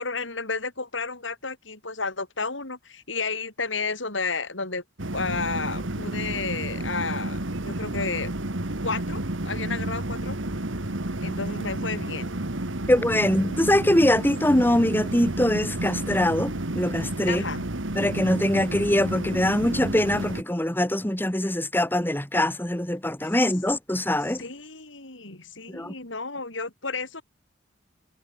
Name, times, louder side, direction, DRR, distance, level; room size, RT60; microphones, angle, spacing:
voice 1, 0.0-4.8 5.1-8.3 8.8-10.4 11.2-12.3 17.3-17.6 24.4-27.2, left 4 dB, 75° left, 5.5 m, -32 dB
sound 1, 5.0-20.4, right 1 dB, 80° right, 2.2 m, -31 dB
voice 2, 12.9-17.4 17.9-24.4 25.7-25.9, left 1 dB, 10° left, 1.6 m, -23 dB
head